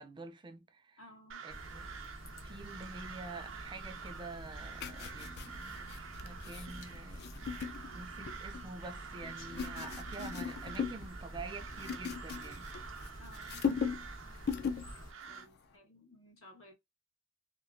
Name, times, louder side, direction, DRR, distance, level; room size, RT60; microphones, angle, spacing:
voice 1, 0.0-1.0 1.4-1.9 2.4-5.8 6.2-7.2 7.9-12.7, right 3 dB, 25° right, 0.4 m, -47 dB
voice 2, 1.0-1.4 13.2-13.7 15.3-16.7, left 1 dB, 85° left, 1.4 m, -57 dB
Crow, 1.3-15.5, right 6 dB, 80° right, 0.6 m, -48 dB
sound 1, 1.5-15.1, equal, 70° left, 1.0 m, -49 dB
sound 2, 4.8-8.7 9.2-11.1 11.4-13.1 13.3-14.1 14.4-14.9 15.2-15.5, left 6 dB, 55° left, 0.4 m, -39 dB
2.9 x 2.4 x 2.5 m
head